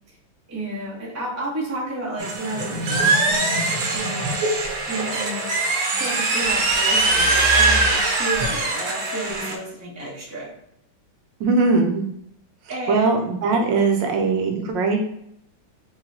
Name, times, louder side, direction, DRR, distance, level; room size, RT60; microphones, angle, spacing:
voice 1, 0.5-4.4 4.9-5.7 6.0-10.5 12.7-13.1, right 1 dB, 20° right, -3 dB, 0.5 m, -31 dB
sound 1, 2.2-9.6, right 2 dB, 90° right, 1.6 m, -21 dB
voice 2, 11.4-12.0 12.9-15.0, right 3 dB, 75° right, 3 dB, 1.2 m, -20 dB
4.7 x 3.1 x 2.7 m, 0.73 s
omnidirectional pair, 2.2 m